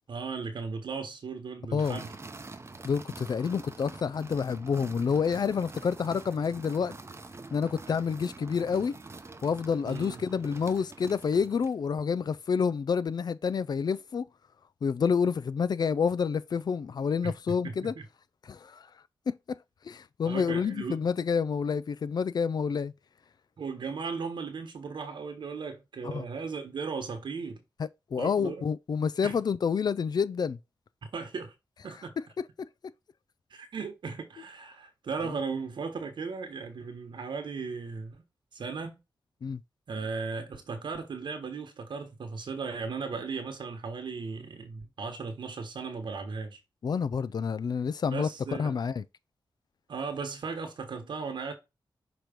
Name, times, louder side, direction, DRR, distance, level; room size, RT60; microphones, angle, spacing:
voice 1, 0.1-2.1 9.8-10.2 17.2-17.3 17.6-18.0 20.2-21.0 23.6-27.6 28.2-28.6 29.2-29.4 31.1-31.5 31.8-32.2 33.5-38.2 38.5-39.0 39.9-46.6 48.1-48.7 49.9-51.5, right 5 dB, 75° right, 1.2 m, -36 dB
sound 1, 1.8-11.8, right 3 dB, 35° right, 0.8 m, -46 dB
voice 2, 2.8-7.0 7.5-9.0 9.4-14.3 14.8-17.9 18.4-18.9 19.3-19.6 19.8-22.9 26.0-26.2 28.1-30.6 39.4-39.6 46.8-48.3 48.6-49.0, left 6 dB, 60° left, 0.4 m, -28 dB
5.9 x 3.1 x 5.1 m
cardioid pair, 70°, 8 cm